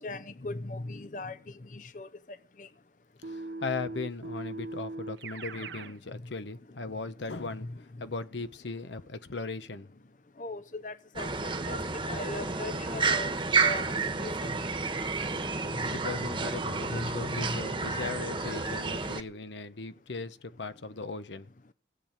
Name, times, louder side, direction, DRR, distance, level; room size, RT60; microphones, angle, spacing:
voice 1, 0.0-2.7 5.5-5.9 7.2-7.8 10.4-11.8 12.1-13.4 13.6-14.5 15.7-16.5 16.8-17.6, left 2 dB, 45° left, 0.7 m, -40 dB
voice 2, 3.2-9.9 15.9-21.5, left 3 dB, 85° left, 1.1 m, -38 dB
Keyboard (musical), 3.2-6.0, right 2 dB, 80° right, 1.0 m, -39 dB
sound 1, 11.2-19.2, right 4 dB, 30° right, 1.2 m, -30 dB
17.0 x 7.6 x 8.8 m
head